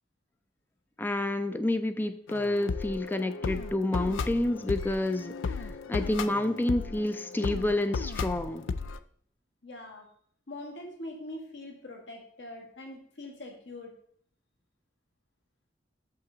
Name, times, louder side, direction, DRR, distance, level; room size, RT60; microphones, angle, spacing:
voice 1, 1.0-5.3 5.6-8.7, left 1 dB, 10° left, 10 dB, 0.3 m, -29 dB
sound 1, 2.3-9.0, left 4 dB, 85° left, 0.4 m, -35 dB
voice 2, 9.6-10.1 10.5-13.9, left 1 dB, 70° left, 1 dB, 1.6 m, -43 dB
6.7 x 5.6 x 3.8 m, 0.63 s
head